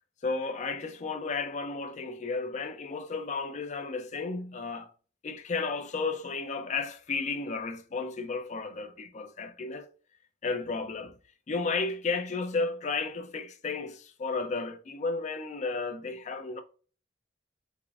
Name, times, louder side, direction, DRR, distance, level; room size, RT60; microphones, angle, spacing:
voice 1, 0.2-4.9 5.2-9.9 10.4-11.2 11.5-16.6, left 4 dB, 40° left, 0.4 m, -33 dB
4.8 x 2.4 x 2.4 m
head